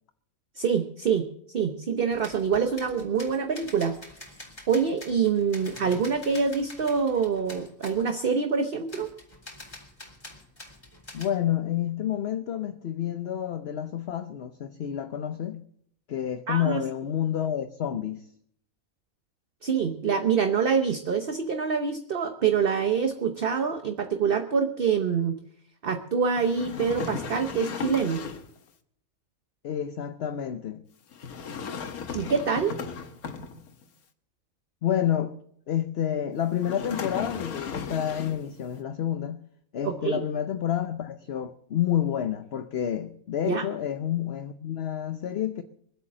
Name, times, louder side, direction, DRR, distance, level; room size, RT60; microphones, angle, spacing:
voice 1, 0.5-3.9 4.7-9.1 16.5-16.8 19.6-25.4 25.8-28.2 32.1-32.8 39.8-40.3 43.5-43.6, right 6 dB, 45° right, 1.0 m, -26 dB
sound 1, 2.1-8.1 8.9-11.3, left 1 dB, 25° left, 3.8 m, -46 dB
voice 2, 11.1-15.6 16.1-18.3 29.6-30.8 34.8-35.3 35.7-39.4 39.7-45.6, left 10 dB, 55° left, 0.9 m, -29 dB
sound 2, 26.3-28.6 31.1-33.8 36.6-38.5, left 6 dB, 85° left, 1.7 m, -36 dB
22.5 x 8.3 x 7.5 m
omnidirectional pair, 1.5 m